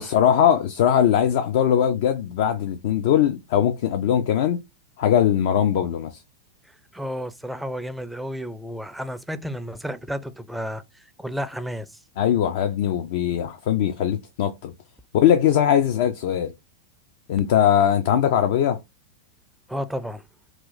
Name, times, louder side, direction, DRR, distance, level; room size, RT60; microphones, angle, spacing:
voice 1, 0.0-4.6 5.0-6.2 12.2-14.7 15.1-16.5 17.3-18.8, left 9 dB, 60° left, 0.4 m, -20 dB
voice 2, 6.6-12.0 19.7-20.3, equal, 5° right, 0.4 m, -32 dB
3.0 x 2.4 x 3.8 m
hypercardioid pair, 95°, 0 cm